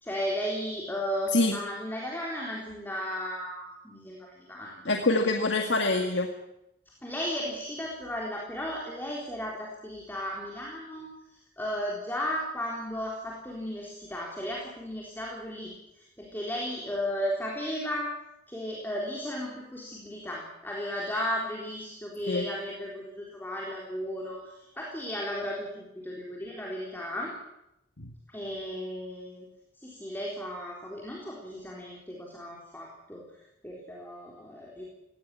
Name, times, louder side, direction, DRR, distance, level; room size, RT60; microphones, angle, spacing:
voice 1, 0.0-5.2 7.0-18.1 18.5-27.3 28.3-29.5 29.8-34.8, equal, 10° left, -3 dB, 3.9 m, -35 dB
voice 2, 4.9-6.3 22.3-22.4 28.0-28.1, left 2 dB, 90° left, 3 dB, 2.0 m, -25 dB
18.0 x 17.5 x 9.9 m, 0.85 s
head